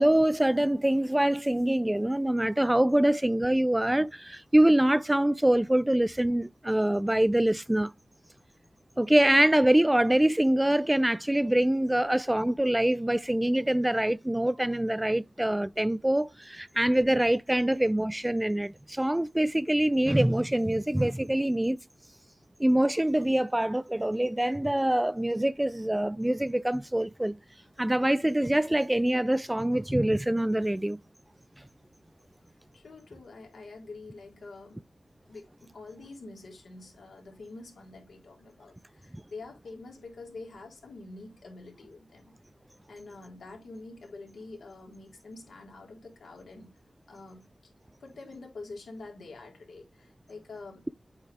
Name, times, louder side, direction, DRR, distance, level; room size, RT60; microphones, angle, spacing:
voice 1, 0.0-7.9 9.0-21.8 22.6-27.4 27.8-31.0, right 1 dB, 10° right, 0.3 m, -24 dB
voice 2, 32.7-34.8 35.3-42.4 42.9-46.7 47.1-47.5 48.0-50.9, left 3 dB, 80° left, 3.7 m, -46 dB
8.5 x 4.6 x 3.5 m
cardioid pair, 70°, 0 cm